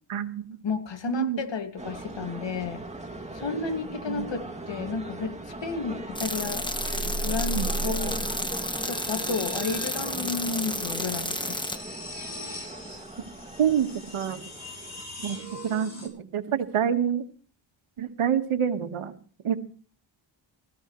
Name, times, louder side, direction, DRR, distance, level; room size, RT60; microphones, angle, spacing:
voice 1, 0.1-0.4 1.1-1.4 4.1-4.3 7.5-7.7 13.6-13.9 14.1-14.4 15.2-17.2 18.0-19.1 19.4-19.6, right 8 dB, 80° right, 8 dB, 1.7 m, -27 dB
voice 2, 0.6-2.8 3.4-6.6 7.2-8.3 8.9-11.6, left 4 dB, 60° left, 7 dB, 2.3 m, -32 dB
sound 1, 1.8-15.0, right 2 dB, 15° right, 2.5 m, -39 dB
sound 2, 3.7-3.9 6.0-16.1, right 1 dB, 30° left, 7.3 m, -38 dB
sound 3, 6.1-11.8, left 1 dB, 10° left, 1.3 m, -32 dB
19.5 x 15.0 x 3.2 m, 0.43 s
cardioid pair, 85°, 50 cm